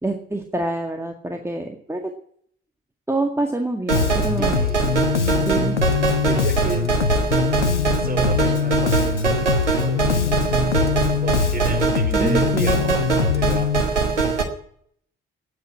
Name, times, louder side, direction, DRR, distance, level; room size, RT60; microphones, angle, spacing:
voice 1, 0.0-2.1 3.1-4.6 5.3-5.8 12.1-13.0, right 2 dB, 10° right, 2 dB, 1.9 m, -27 dB
Bass guitar, 3.9-13.8, left 6 dB, 90° left, 0.5 m, -23 dB
sound 1, 3.9-14.4, right 4 dB, 85° right, 1.5 m, -22 dB
voice 2, 4.4-5.0 6.2-6.9 8.0-10.5 11.2-13.8, right 3 dB, 25° right, 4 dB, 4.3 m, -32 dB
14.5 x 9.5 x 8.8 m, 0.65 s
figure-of-eight pair, 40°, 34 cm